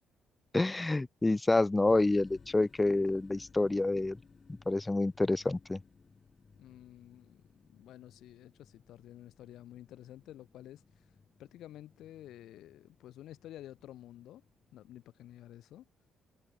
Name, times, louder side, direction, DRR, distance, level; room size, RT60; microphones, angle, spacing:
voice 1, 0.5-4.2 4.7-5.8, left 2 dB, 15° left, 0.3 m, -28 dB
sound 1, 1.9-15.2, left 5 dB, 35° left, 4.8 m, -61 dB
voice 2, 6.5-7.4 7.7-10.8 11.4-14.4 14.7-15.9, left 13 dB, 80° left, 2.8 m, -51 dB
cardioid pair, 90°, 0 cm